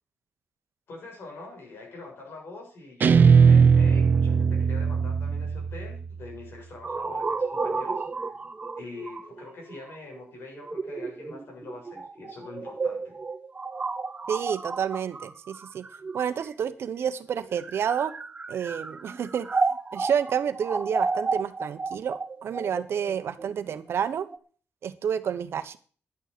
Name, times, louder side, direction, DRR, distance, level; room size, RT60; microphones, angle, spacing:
voice 1, 0.9-8.3 8.8-13.1 25.2-25.3, left 3 dB, 60° left, 0 dB, 7.5 m, -44 dB
Guitar, 3.0-6.2, right 6 dB, 45° right, 0.7 m, -19 dB
sound 1, 6.8-16.7 17.4-24.4, right 4 dB, 25° right, 0.9 m, -32 dB
voice 2, 14.3-15.9 16.1-18.1 18.5-19.5 19.9-24.3 24.8-25.8, right 8 dB, 70° right, 11 dB, 1.1 m, -29 dB
11.0 x 9.2 x 6.9 m, 0.41 s
wide cardioid pair, 160°, 4 cm